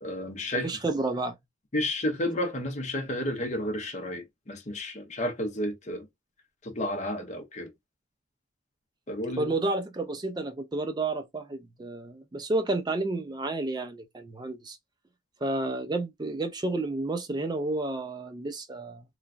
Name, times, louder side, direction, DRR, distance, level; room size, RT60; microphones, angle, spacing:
voice 1, 0.0-0.7 1.7-6.1 6.6-7.7 9.1-9.5, left 1 dB, 35° left, 0.7 m, -31 dB
voice 2, 0.6-1.4 9.4-14.8 15.4-19.0, right 2 dB, 20° right, 0.3 m, -31 dB
3.1 x 2.3 x 2.4 m
head